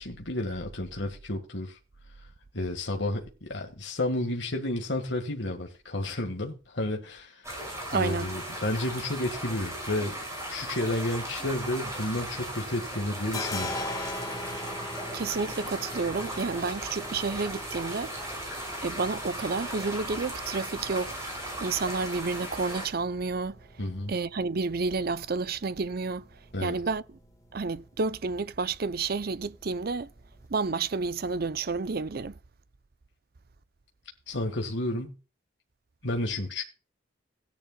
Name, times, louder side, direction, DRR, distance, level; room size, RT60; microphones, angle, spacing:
voice 1, 0.0-1.8 2.5-7.5 7.9-10.2 10.5-13.7 23.8-24.1 26.5-26.8 34.3-35.2 36.0-36.6, left 1 dB, 60° left, 1.7 m, -31 dB
sound 1, 7.4-22.9, right 1 dB, 15° right, 6.1 m, -37 dB
voice 2, 7.9-8.3 15.1-18.1 18.8-23.6 24.1-26.3 26.6-27.0 27.5-30.1 30.5-32.4, right 4 dB, 50° right, 0.6 m, -30 dB
sound 2, 11.7-12.7 12.9-30.4, left 1 dB, 15° left, 1.6 m, -43 dB
17.0 x 10.5 x 2.3 m
head